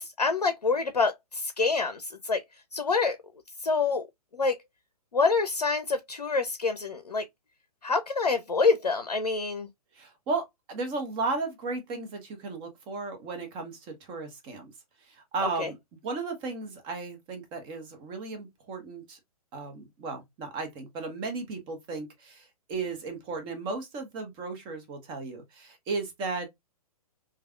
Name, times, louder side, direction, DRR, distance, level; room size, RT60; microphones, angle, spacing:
voice 1, 0.0-2.4 2.7-3.2 3.6-4.1 4.3-4.6 5.1-7.2 7.8-9.7 15.6-15.7, left 4 dB, 90° left, 0.5 m, -26 dB
voice 2, 9.9-14.7 15.1-15.8 16.0-19.2 19.5-26.5, right 3 dB, 25° right, 1.1 m, -35 dB
3.3 x 2.3 x 2.3 m
figure-of-eight pair, 120°, 20 cm